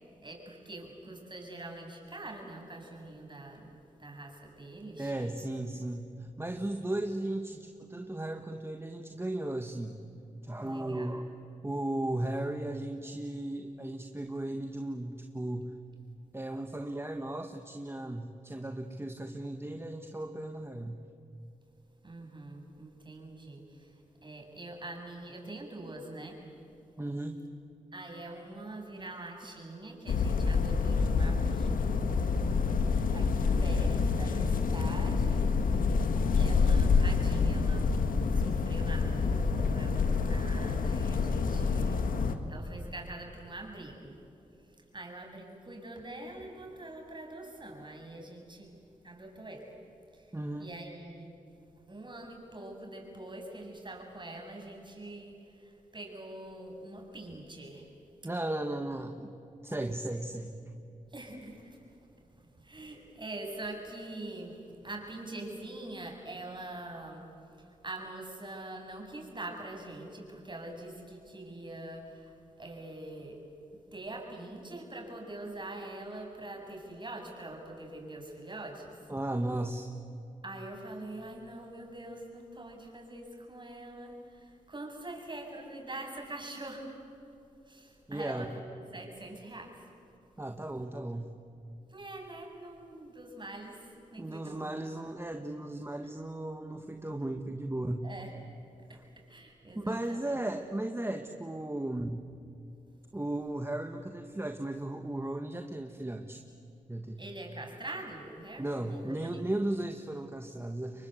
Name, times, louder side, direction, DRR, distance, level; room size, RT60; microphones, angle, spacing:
voice 1, 0.2-3.7 4.0-5.3 5.7-5.8 10.6-11.2 22.0-23.9 24.2-26.4 27.9-32.5 33.1-35.5 36.3-38.0 38.3-42.0 42.5-44.1 44.9-48.7 49.0-49.7 50.1-51.4 51.9-57.9 61.1-61.8 62.6-67.3 67.6-73.4 73.9-79.0 80.4-87.0 87.7-88.6 88.9-89.9 91.9-94.7 98.0-98.3 98.9-99.0 99.3-100.4 107.2-109.4, right 2 dB, 35° right, 2 dB, 7.5 m, -44 dB
voice 2, 5.0-10.0 10.4-11.3 11.6-15.7 16.3-21.0 27.0-27.5 50.3-50.7 58.2-59.3 59.6-60.6 79.1-79.9 88.1-88.5 90.4-91.3 94.2-98.1 99.8-102.2 103.1-106.4 106.9-107.2 108.6-111.1, right 1 dB, 15° right, 5 dB, 1.8 m, -36 dB
sound 1, 30.1-42.4, left 4 dB, 80° left, 1.8 m, -27 dB
30.0 x 23.5 x 8.2 m, 2.7 s
cardioid pair, 50°, 14 cm